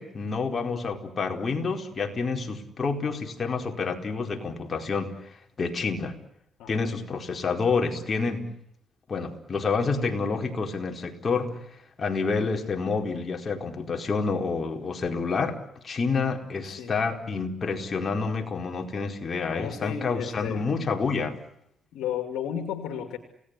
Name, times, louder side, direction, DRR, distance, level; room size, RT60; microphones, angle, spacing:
voice 1, 0.0-5.1 5.6-6.1 6.7-8.4 9.1-11.6 12.0-15.6 15.8-21.4, left 4 dB, 40° left, 4 dB, 4.5 m, -28 dB
voice 2, 6.6-6.9 16.6-16.9 19.5-20.7 21.9-23.2, left 9 dB, 85° left, 7 dB, 2.5 m, -33 dB
29.5 x 18.5 x 9.8 m, 0.78 s
cardioid pair, 90°, 0 cm